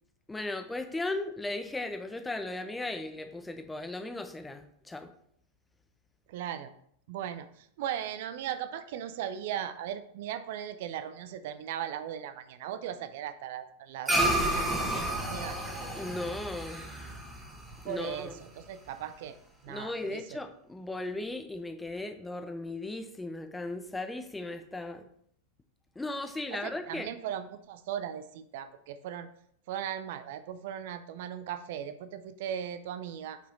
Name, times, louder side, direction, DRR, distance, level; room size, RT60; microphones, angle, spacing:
voice 1, 0.3-5.1 16.0-16.9 17.8-18.4 19.7-25.0 26.0-27.1, left 2 dB, 10° left, 8 dB, 0.7 m, -37 dB
voice 2, 6.3-6.7 7.1-15.6 17.8-19.4 19.6-20.2 26.5-29.3 29.7-33.4, right 10 dB, 50° right, 11 dB, 0.5 m, -38 dB
sound 1, 14.1-18.7, right 1 dB, 10° right, 1.4 m, -31 dB
7.9 x 4.8 x 3.9 m, 0.69 s
figure-of-eight pair, 90°, 0 cm